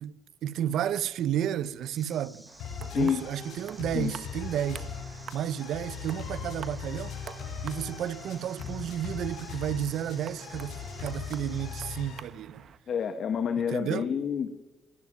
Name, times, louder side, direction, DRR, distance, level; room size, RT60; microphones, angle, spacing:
voice 1, 0.0-2.4 2.8-4.9 5.3-7.1 7.6-12.7 13.7-14.1, right 10 dB, 80° right, 0.8 m, -32 dB
sound 1, 1.9-11.8, equal, 5° right, 2.9 m, -53 dB
sound 2, 2.5-12.8, right 8 dB, 60° right, 1.5 m, -48 dB
sound 3, 2.6-12.2, left 6 dB, 90° left, 7.9 m, -40 dB
voice 2, 2.9-3.2 3.9-4.1 12.9-14.5, left 7 dB, 60° left, 1.8 m, -28 dB
25.0 x 12.0 x 9.5 m
cardioid pair, 90°, 0 cm